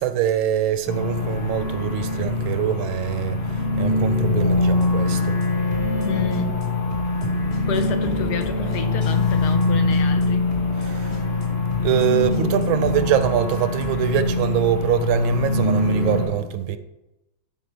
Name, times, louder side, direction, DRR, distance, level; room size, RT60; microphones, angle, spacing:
voice 1, 0.0-5.4 10.8-11.2 11.8-16.8, right 10 dB, 75° right, 1.3 m, -24 dB
sound 1, 0.9-16.2, left 2 dB, 85° left, 2.7 m, -23 dB
sound 2, 4.5-4.9 5.1-5.5 5.7-6.1 6.3-6.7 6.9-7.3 7.5-9.7 9.9-10.3 10.5-10.9 11.1-11.5 11.7-12.1 12.3-14.0, equal, 20° left, 1.0 m, -37 dB
voice 2, 6.0-6.8 7.7-10.6, left 6 dB, 65° left, 1.2 m, -29 dB
12.0 x 5.3 x 3.3 m
omnidirectional pair, 2.3 m